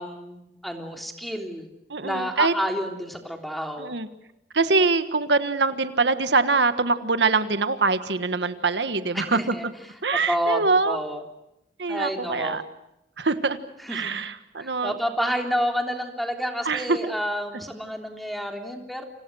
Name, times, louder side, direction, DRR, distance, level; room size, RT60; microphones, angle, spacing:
voice 1, 0.0-1.7 2.0-3.9 9.1-9.6 10.3-10.6 10.8-11.2 11.9-12.6 13.8-14.1 14.6-19.1, equal, ahead, 3 dB, 3.4 m, -29 dB
voice 2, 1.9-2.5 3.8-4.1 4.5-9.5 10.0-11.0 11.8-12.6 13.2-13.6 13.9-14.9 16.6-17.0, right 4 dB, 75° right, 10 dB, 1.5 m, -23 dB
30.0 x 26.5 x 6.3 m, 0.85 s
head